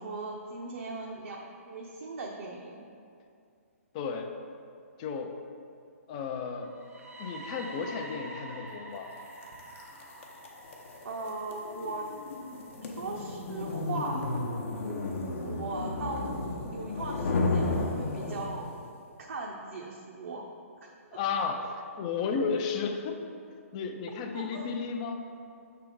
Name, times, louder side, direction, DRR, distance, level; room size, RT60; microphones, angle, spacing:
voice 1, 0.0-2.8 11.0-12.1 12.8-14.3 15.4-16.2 16.7-18.7 19.3-20.4 20.8-20.9 24.3-24.7, right 3 dB, 70° right, -2 dB, 0.7 m, -38 dB
voice 2, 3.9-4.3 5.0-5.4 6.1-6.7 7.2-9.1 21.1-23.2 23.7-25.3, left 5 dB, 25° left, 5 dB, 0.4 m, -33 dB
sound 1, 6.6-14.5, right 2 dB, 90° right, 1.4 m, -47 dB
sound 2, 9.4-18.8, left 2 dB, 50° left, 0.8 m, -33 dB
6.0 x 3.4 x 4.9 m, 2.4 s
hypercardioid pair, 160°, 8 cm